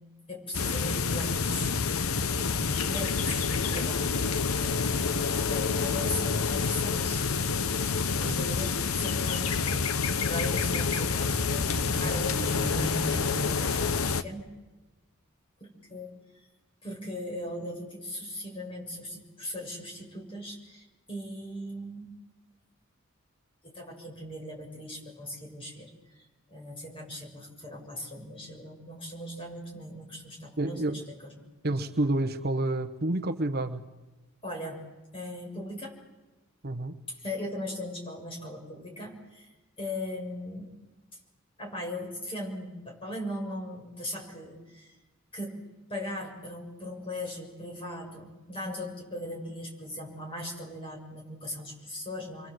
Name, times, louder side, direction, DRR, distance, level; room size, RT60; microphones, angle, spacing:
voice 1, 0.3-1.7 2.2-4.2 4.5-14.6 15.6-16.1 16.8-22.1 23.6-31.5 34.4-34.9 35.1-36.0 37.1-39.5 39.8-40.7 41.6-44.9 45.3-52.5, left 1 dB, 25° left, 0 dB, 6.9 m, -39 dB
sound 1, 0.5-14.2, left 5 dB, 85° left, 0.9 m, -28 dB
sound 2, 9.5-14.2, right 1 dB, 10° right, 7.6 m, -39 dB
voice 2, 30.6-31.0 31.6-33.9 36.6-37.0, right 1 dB, 45° right, 8 dB, 1.1 m, -29 dB
29.5 x 24.0 x 7.8 m, 1.1 s
head